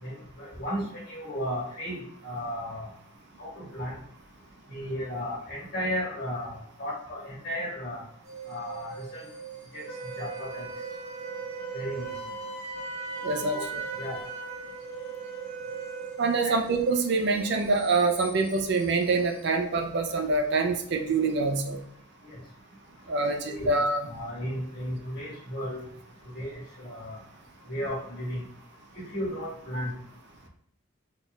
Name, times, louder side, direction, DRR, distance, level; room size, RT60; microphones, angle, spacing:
voice 1, 0.0-2.9 3.4-3.9 4.7-8.0 8.5-9.3 9.7-9.8 10.2-10.7 11.7-12.1 13.5-13.6 14.0-14.2 16.4-16.5 22.2-22.4 23.5-23.7 24.1-25.8 26.3-27.2 27.7-28.4 28.9-29.9, equal, 50° left, -6 dB, 1.7 m, -34 dB
sound 1, 8.2-19.5, right 6 dB, 75° right, 1.5 m, -43 dB
Wind instrument woodwind instrument, 9.9-16.2, right 3 dB, 30° left, 1.0 m, -39 dB
voice 2, 13.2-13.6 16.2-21.8 23.1-24.0, right 3 dB, 55° right, 4 dB, 0.5 m, -25 dB
4.3 x 3.9 x 2.3 m, 0.66 s
head